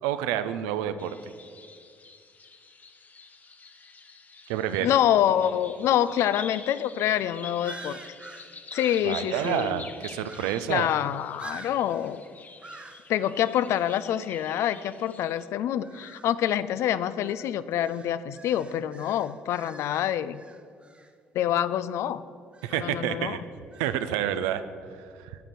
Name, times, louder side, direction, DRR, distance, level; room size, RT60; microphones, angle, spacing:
voice 1, 0.0-1.2 4.5-4.9 9.0-10.9 22.6-23.4 23.8-24.6 25.2-25.3, right 11 dB, 70° right, 11 dB, 0.5 m, -28 dB
sound 1, 1.0-15.4, left 4 dB, 30° left, 0.7 m, -46 dB
voice 2, 4.8-8.0 8.7-9.8 10.7-12.2 13.1-20.4 21.3-22.2 22.7-23.4, left 11 dB, 60° left, 15 dB, 0.4 m, -26 dB
Crows - Louisbourg Lighthouse Trail, 6.6-6.8 7.1-7.3 7.6-9.7 10.2-10.8 11.4-12.2 12.6-13.1 13.7-14.0 15.8-16.4 17.2-21.1 22.5-23.0 23.7-24.0, right 3 dB, 20° right, 0.8 m, -47 dB
9.5 x 5.1 x 6.2 m, 2.2 s
hypercardioid pair, 50°, 5 cm